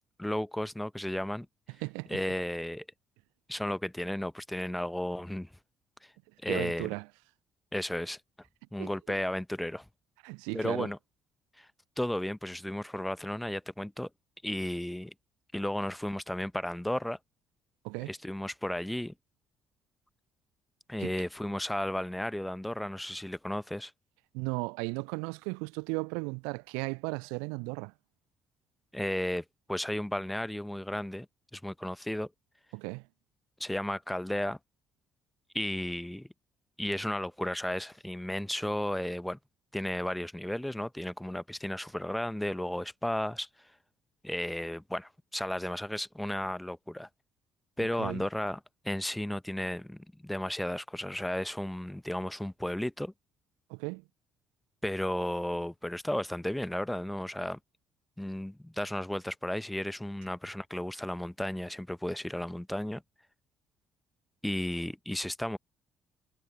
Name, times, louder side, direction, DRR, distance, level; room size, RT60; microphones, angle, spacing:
voice 1, 0.2-1.5 2.1-2.8 3.5-5.5 6.4-6.9 7.7-8.2 8.7-9.8 10.5-11.0 11.6-11.7 12.0-14.1 14.4-15.1 15.5-17.2 18.1-19.1 20.9-23.9 28.9-31.3 31.5-32.3 33.6-34.6 35.5-36.3 36.8-39.4 39.7-43.5 44.2-47.1 47.8-48.6 48.8-53.1 54.8-57.6 58.2-63.0 64.4-65.6, left 1 dB, 5° left, 1.0 m, -34 dB
voice 2, 1.8-2.2 6.5-7.1 8.8-8.9 10.2-10.9 17.8-18.1 21.0-21.1 24.3-27.9 32.7-33.1 47.8-48.2 53.7-54.0, right 34 dB, 65° right, 0.3 m, -36 dB
figure-of-eight pair, 50°, 0 cm